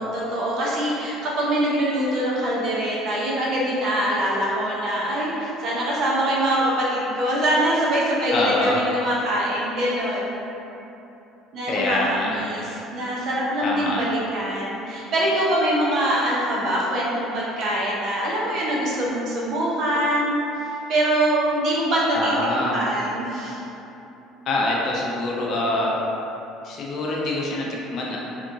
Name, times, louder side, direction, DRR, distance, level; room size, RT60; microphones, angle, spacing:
voice 1, 0.0-10.4 11.5-20.4 20.7-22.3 22.6-23.6, right 1 dB, 50° right, -5 dB, 0.6 m, -24 dB
voice 2, 8.3-8.8 11.7-12.5 13.6-14.0 22.1-22.8 24.5-25.9 26.6-28.2, left 2 dB, 45° left, -3 dB, 0.4 m, -25 dB
2.8 x 2.4 x 2.5 m, 2.9 s
cardioid pair, 145°, 0 cm